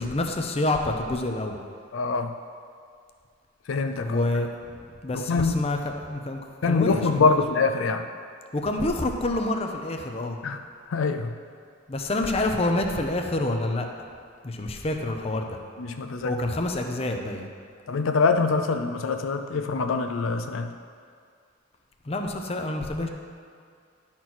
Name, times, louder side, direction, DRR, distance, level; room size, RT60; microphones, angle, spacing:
voice 1, 0.0-1.6 4.0-4.5 5.0-7.3 8.5-10.4 11.9-14.1 14.4-15.6 16.2-17.5 22.0-23.1, left 2 dB, 30° left, 3 dB, 0.6 m, -27 dB
voice 2, 1.9-2.3 3.7-4.3 5.1-5.6 6.6-8.1 10.4-10.6 10.9-11.3 15.8-16.3 17.9-20.7, left 4 dB, 75° left, 6 dB, 0.4 m, -24 dB
10.5 x 4.4 x 6.0 m, 2.2 s
head